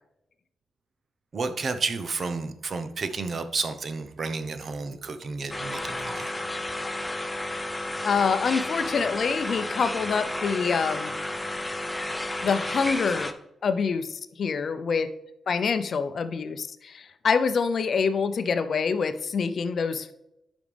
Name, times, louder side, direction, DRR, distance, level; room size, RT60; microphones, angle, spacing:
voice 1, 1.3-6.3, right 4 dB, 50° right, 10 dB, 0.8 m, -31 dB
sound 1, 5.5-13.3, left 1 dB, 10° left, 0.6 m, -32 dB
voice 2, 8.0-11.1 12.4-13.3 13.6-15.1 15.5-20.1, left 5 dB, 55° left, 11 dB, 0.6 m, -26 dB
11.0 x 5.1 x 3.4 m, 0.90 s
cardioid pair, 105°, 0 cm